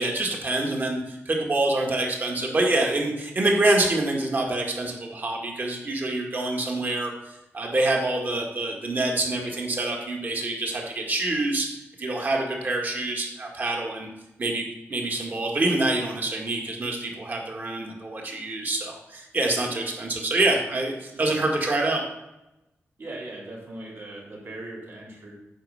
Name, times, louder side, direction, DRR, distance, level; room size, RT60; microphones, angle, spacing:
voice 1, 0.0-11.7 12.0-14.1 14.4-22.0, right 2 dB, 40° right, 0 dB, 1.8 m, -26 dB
voice 2, 23.0-25.3, right 2 dB, 55° right, -4 dB, 3.2 m, -39 dB
9.0 x 5.3 x 6.5 m, 0.95 s
wide cardioid pair, 170°, 5 cm